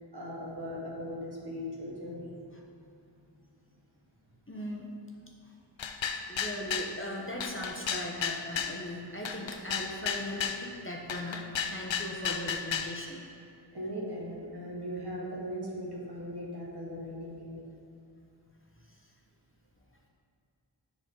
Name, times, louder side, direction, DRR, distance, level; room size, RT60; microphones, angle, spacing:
voice 1, 0.1-2.3 13.7-17.6, equal, 60° right, -4 dB, 1.6 m, -38 dB
voice 2, 4.5-4.9 5.4-5.5 6.3-13.2 18.9-19.0, left 1 dB, 30° left, -1 dB, 0.9 m, -39 dB
sound 1, 5.8-6.9 7.4-8.8 9.3-10.6 11.1-12.9, left 7 dB, 80° left, 0.5 m, -33 dB
7.8 x 6.2 x 3.9 m, 2.6 s
wide cardioid pair, 60°, 45 cm